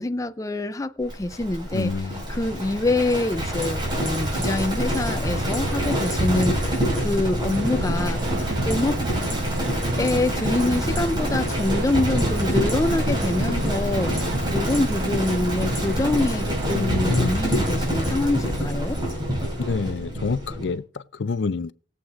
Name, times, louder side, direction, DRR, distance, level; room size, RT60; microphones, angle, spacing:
voice 1, 0.0-1.9 2.3-8.2 8.7-9.0 10.0-14.1 14.5-19.0, left 2 dB, 20° left, 0.4 m, -25 dB
Livestock farm animals working animals, 1.1-20.7, equal, 25° right, 5.0 m, -26 dB
voice 2, 1.7-2.2 16.7-17.3 19.6-21.7, left 4 dB, 80° left, 0.5 m, -27 dB
sound 1, 7.5-17.3, right 2 dB, 70° right, 0.8 m, -34 dB
21.0 x 8.0 x 2.5 m
head